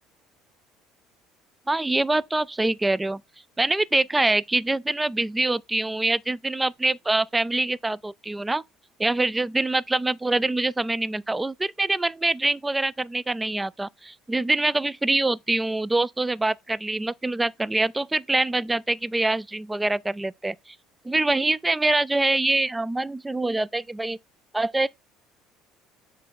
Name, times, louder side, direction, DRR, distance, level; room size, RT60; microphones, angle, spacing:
voice 1, 1.7-3.2 3.6-8.6 9.0-20.7 21.0-24.2 24.5-24.9, right 2 dB, 10° right, 0.4 m, -25 dB
7.6 x 3.3 x 5.8 m
supercardioid pair, 100°, 0 cm